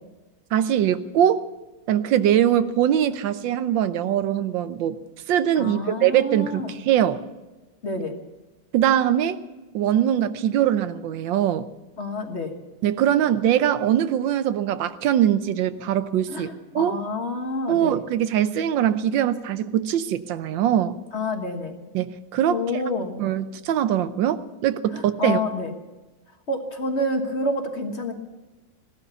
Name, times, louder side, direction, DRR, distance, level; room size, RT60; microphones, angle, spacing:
voice 1, 0.5-1.4 1.9-5.0 5.3-7.2 8.7-9.4 9.7-11.7 12.8-16.5 16.7-17.0 17.7-21.0 21.9-22.6 23.2-25.4, right 10 dB, 85° right, 13 dB, 1.5 m, -22 dB
voice 2, 5.5-6.7 7.8-8.2 12.0-12.5 16.3-18.0 21.1-21.8 22.5-23.2 24.9-25.7 26.5-28.1, left 2 dB, 40° left, 5 dB, 1.6 m, -28 dB
16.5 x 12.5 x 7.0 m, 1.1 s
omnidirectional pair, 2.0 m